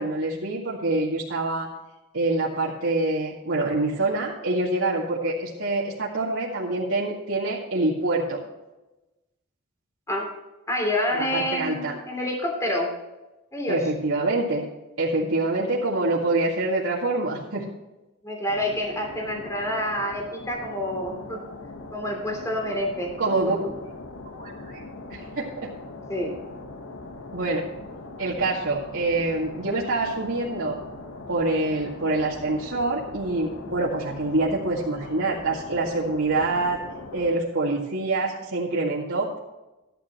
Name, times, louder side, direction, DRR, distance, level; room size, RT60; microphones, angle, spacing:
voice 1, 0.0-1.7 2.1-8.4 11.1-11.9 13.7-14.7 15.0-17.7 23.2-23.6 24.4-24.8 25.1-25.7 27.3-27.6 28.2-30.8 31.3-36.8 37.1-39.4, right 2 dB, 90° right, -6 dB, 2.2 m, -26 dB
voice 2, 10.7-12.9 13.5-13.8 18.2-21.4 21.9-23.6 26.1-26.3, left 1 dB, 15° left, 0 dB, 3.1 m, -28 dB
sound 1, 18.5-37.4, left 2 dB, 85° left, 1.3 m, -41 dB
14.0 x 11.5 x 3.1 m, 1.0 s
head